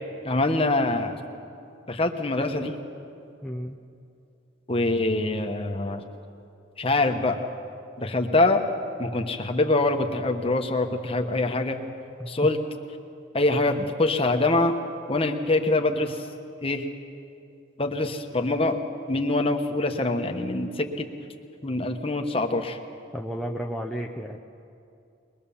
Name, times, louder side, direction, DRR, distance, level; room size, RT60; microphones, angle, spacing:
voice 1, 0.2-1.2 1.9-2.7 4.7-6.0 6.8-7.4 8.0-8.6 9.0-11.8 12.3-12.6 13.3-14.7 15.1-16.2 16.6-16.9 17.8-18.8 19.1-21.1 21.6-22.8, left 2 dB, 25° left, 4 dB, 1.1 m, -24 dB
voice 2, 3.4-3.8 12.2-12.3 23.1-24.4, equal, ahead, -1 dB, 0.6 m, -32 dB
22.5 x 21.0 x 7.1 m, 2.5 s
head